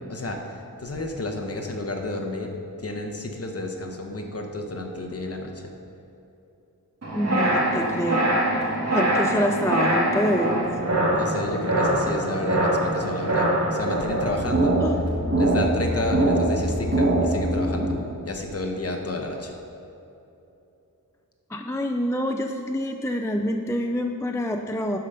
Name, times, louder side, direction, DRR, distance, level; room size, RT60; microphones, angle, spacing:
voice 1, 0.1-2.5 2.8-5.6 11.1-15.0 15.4-18.0 18.2-19.5, left 2 dB, 40° left, 2 dB, 1.1 m, -31 dB
sound 1, 7.0-17.9, right 1 dB, 45° right, 2.3 m, -23 dB
voice 2, 7.1-8.3 8.9-10.7 14.8-15.0 21.5-25.0, left 1 dB, 10° left, 4 dB, 0.4 m, -26 dB
11.5 x 5.1 x 5.6 m, 2.9 s
wide cardioid pair, 110°, 36 cm